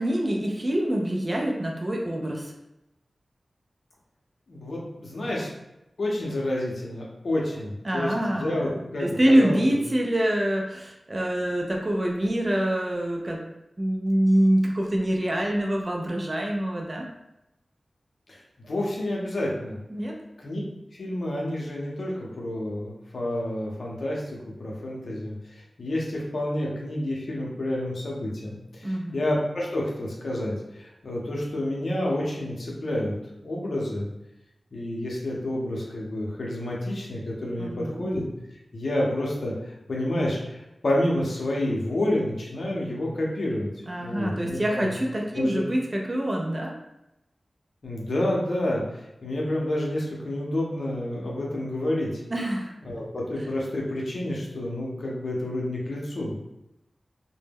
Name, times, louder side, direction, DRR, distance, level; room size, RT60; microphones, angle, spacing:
voice 1, 0.0-2.5 7.8-13.4 13.8-17.1 19.9-20.2 28.8-29.2 37.6-38.1 43.9-46.7 52.3-52.7, right 1 dB, 35° right, -1 dB, 0.4 m, -25 dB
voice 2, 4.5-5.5 6.0-9.6 18.3-19.8 20.4-20.6 20.9-33.1 33.4-34.1 34.7-38.2 38.7-43.7 44.0-44.9 45.3-45.6 47.8-52.2 52.8-56.4, left 1 dB, 70° left, -3 dB, 0.6 m, -29 dB
2.1 x 2.1 x 3.3 m, 0.90 s
wide cardioid pair, 80°, 0 cm